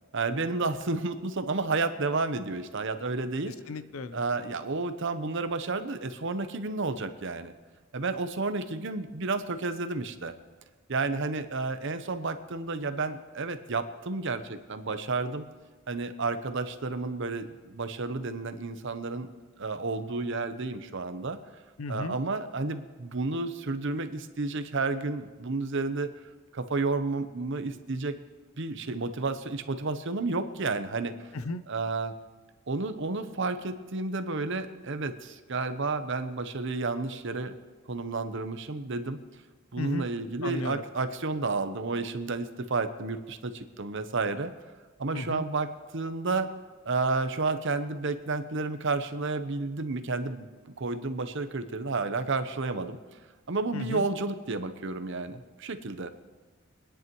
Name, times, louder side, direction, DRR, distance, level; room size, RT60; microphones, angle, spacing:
voice 1, 0.1-3.6 4.1-7.5 7.9-10.3 10.9-15.4 15.9-19.3 19.6-21.4 21.9-26.1 26.5-28.2 28.6-31.3 31.7-32.1 32.7-37.5 37.9-39.2 39.7-44.5 45.0-46.5 46.8-53.0 53.5-56.1, right 3 dB, 60° right, 9 dB, 0.8 m, -31 dB
voice 2, 3.5-4.2 21.8-22.2 31.3-31.6 39.8-40.1 40.4-40.8 45.1-45.4 53.7-54.0, left 3 dB, 85° left, 13 dB, 0.6 m, -35 dB
25.0 x 10.0 x 3.1 m, 1.3 s
head